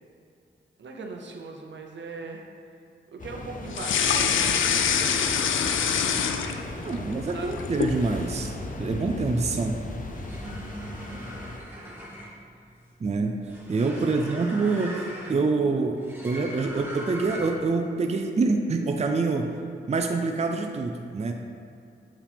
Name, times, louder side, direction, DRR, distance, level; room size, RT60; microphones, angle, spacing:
voice 1, 0.8-2.5 3.1-4.9 6.9-7.1 7.3-7.6 12.1-12.2 14.0-14.5, right 3 dB, 70° right, 2 dB, 0.8 m, -40 dB
sound 1, 3.2-11.6, left 2 dB, 45° left, 0.7 m, -36 dB
sound 2, 3.7-6.9 7.3-8.0, left 7 dB, 85° left, 0.4 m, -24 dB
voice 2, 6.8-8.5 8.8-9.8 13.0-13.3 13.7-15.0 15.3-19.5 19.9-21.3, right 3 dB, 35° right, 4 dB, 0.5 m, -26 dB
sound 3, 10.1-17.8, equal, 10° right, 1.4 m, -40 dB
7.2 x 4.6 x 3.5 m, 2.5 s
cardioid pair, 50°, 20 cm